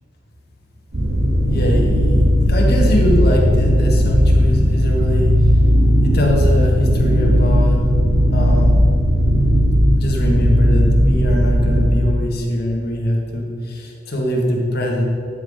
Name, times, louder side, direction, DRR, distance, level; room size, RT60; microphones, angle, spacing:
sound 1, 0.9-11.9, equal, 65° right, 1.8 m, -15 dB
voice 1, 1.5-5.4 6.0-7.9 8.3-8.8 10.0-15.0, equal, 55° left, -1 dB, 1.6 m, -22 dB
9.8 x 5.5 x 4.9 m, 2.5 s
head